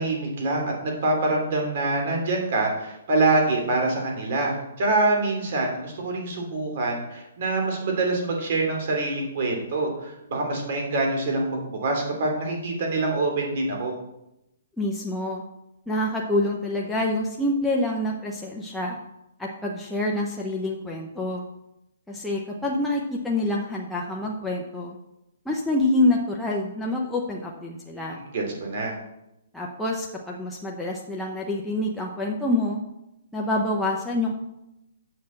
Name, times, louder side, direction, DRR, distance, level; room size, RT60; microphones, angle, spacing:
voice 1, 0.0-13.9 28.1-28.9, right 2 dB, 45° right, 1 dB, 3.1 m, -25 dB
voice 2, 14.8-15.4 15.9-19.0 19.4-21.4 22.1-25.0 25.5-28.2 29.5-32.8 33.3-34.4, left 1 dB, 5° left, -3 dB, 0.7 m, -26 dB
7.2 x 6.7 x 7.5 m, 0.89 s
hypercardioid pair, 170°, 0 cm